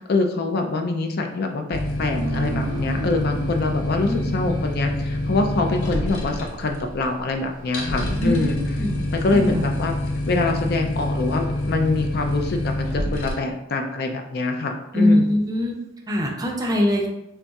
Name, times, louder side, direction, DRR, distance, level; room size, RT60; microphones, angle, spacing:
voice 1, 0.1-8.6 9.1-9.9 10.3-15.3, left 3 dB, 45° left, 4 dB, 0.4 m, -25 dB
sound 1, 1.7-13.3, left 1 dB, 85° left, 0.8 m, -27 dB
sound 2, 2.1-5.3, right 3 dB, 80° right, 0.5 m, -34 dB
voice 2, 8.2-8.9 9.3-9.6 14.9-15.7 16.1-17.1, left 1 dB, 15° right, 1 dB, 0.5 m, -21 dB
3.4 x 2.3 x 4.0 m, 0.85 s
head